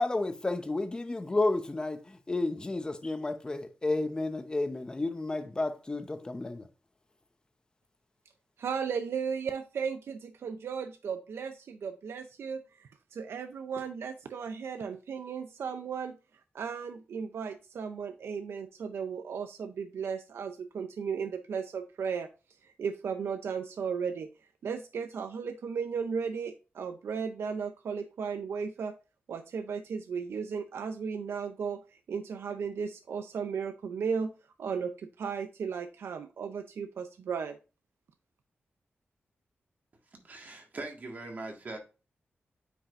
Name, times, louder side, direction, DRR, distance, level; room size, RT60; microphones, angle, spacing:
voice 1, 0.0-6.7, left 2 dB, 20° left, 0.7 m, -31 dB
voice 2, 8.6-16.2 16.5-22.3 22.6-24.3 24.6-28.9 29.3-31.8 32.1-34.3 34.6-37.6, right 6 dB, 85° right, 0.5 m, -35 dB
voice 3, 40.2-41.8, right 2 dB, 45° right, 1.7 m, -41 dB
8.8 x 4.9 x 2.5 m
wide cardioid pair, 155°, 4 cm